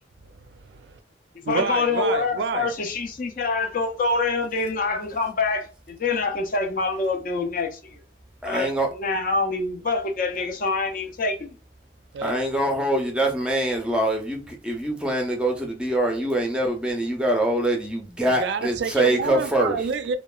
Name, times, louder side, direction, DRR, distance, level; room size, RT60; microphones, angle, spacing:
voice 1, 0.2-0.8 1.4-2.7 12.1-12.4 18.3-20.2, right 5 dB, 80° right, 0.3 m, -28 dB
voice 2, 1.4-8.0 8.4-11.4, left 3 dB, 50° left, 0.4 m, -26 dB
voice 3, 8.4-8.9 12.2-19.8, right 1 dB, 5° right, 0.5 m, -24 dB
2.8 x 2.1 x 2.3 m
head